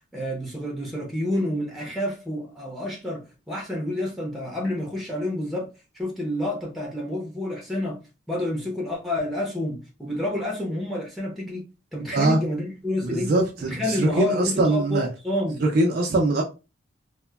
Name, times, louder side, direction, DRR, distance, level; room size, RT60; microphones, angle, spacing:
voice 1, 0.1-5.7 5.9-8.0 8.3-11.6 11.9-13.3 13.6-15.6, left 1 dB, ahead, 0.6 m, -29 dB
voice 2, 13.0-15.1 15.7-16.4, right 2 dB, 50° right, 0.4 m, -22 dB
3.0 x 2.1 x 2.3 m
head